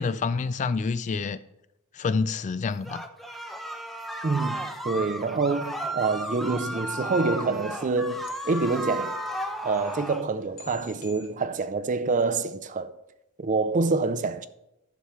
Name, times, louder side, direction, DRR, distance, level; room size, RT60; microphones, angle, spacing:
voice 1, 0.0-1.4 1.9-3.1, left 4 dB, 35° left, 0.3 m, -27 dB
sound 1, 2.9-10.3, right 1 dB, ahead, 0.6 m, -34 dB
voice 2, 4.2-9.2 9.6-12.9 13.4-14.5, right 3 dB, 35° right, 0.5 m, -26 dB
sound 2, 6.2-11.3, left 4 dB, 80° left, 2.1 m, -52 dB
11.5 x 7.1 x 3.1 m
head